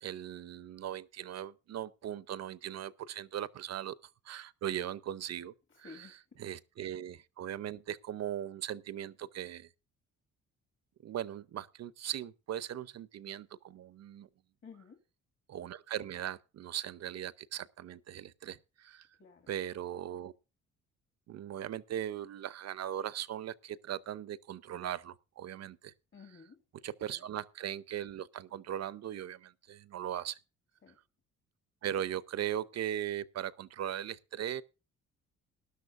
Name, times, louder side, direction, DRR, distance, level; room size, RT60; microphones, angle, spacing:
voice 1, 0.0-4.0 4.2-5.5 5.8-6.1 6.4-9.7 11.0-14.3 15.5-19.1 19.5-20.3 21.3-25.9 26.8-30.4 31.8-34.6, right 10 dB, 60° right, 0.7 m, -39 dB
voice 2, 5.7-6.4 14.6-15.0 19.2-19.5 26.1-26.6 27.1-27.3 30.8-31.0, left 5 dB, 40° left, 2.0 m, -54 dB
18.5 x 11.5 x 2.5 m
cardioid pair, 90°, 30 cm